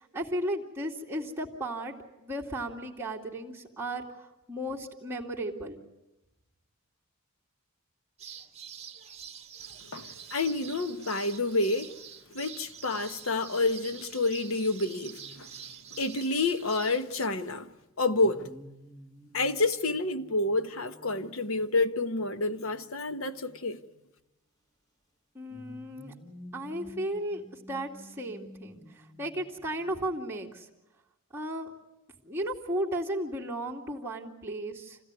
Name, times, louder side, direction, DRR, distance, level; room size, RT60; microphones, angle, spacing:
voice 1, 0.0-1.9 2.2-5.8 25.3-26.1 26.5-30.7 31.3-31.7 32.2-35.0, right 1 dB, 10° right, 2.6 m, -35 dB
sound 1, 8.2-17.3, right 8 dB, 30° right, 1.7 m, -46 dB
voice 2, 9.9-11.9 12.3-15.5 15.9-17.7 18.0-18.5 19.3-23.8, left 2 dB, 65° left, 1.2 m, -29 dB
sound 2, 15.2-16.1 18.1-24.1 25.5-30.0, equal, 20° left, 2.7 m, -52 dB
27.0 x 16.5 x 9.7 m
head